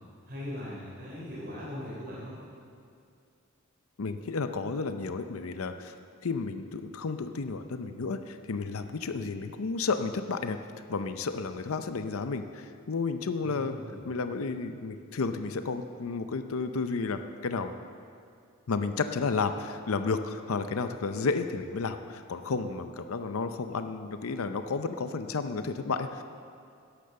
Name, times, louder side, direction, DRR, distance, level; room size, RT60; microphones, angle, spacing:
voice 1, 0.3-2.4 13.4-14.0, left 1 dB, 45° right, -7 dB, 3.4 m, -40 dB
voice 2, 4.0-5.9 6.2-10.6 10.9-13.7 14.1-17.7 18.7-26.2, left 4 dB, 75° left, 8 dB, 0.6 m, -32 dB
12.0 x 10.0 x 6.9 m, 2.4 s
head